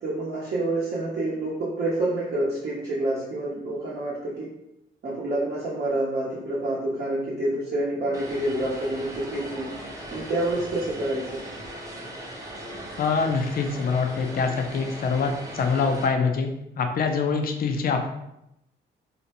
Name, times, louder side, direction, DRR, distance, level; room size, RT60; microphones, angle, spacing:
voice 1, 0.0-4.5 5.0-9.7 10.1-11.4, right 1 dB, 50° right, -8 dB, 0.8 m, -28 dB
Vehicle, 8.1-16.1, right 1 dB, 15° right, 0.6 m, -39 dB
voice 2, 13.0-18.1, left 5 dB, 50° left, 4 dB, 0.4 m, -25 dB
2.5 x 2.1 x 2.9 m, 0.83 s
cardioid pair, 90°, 20 cm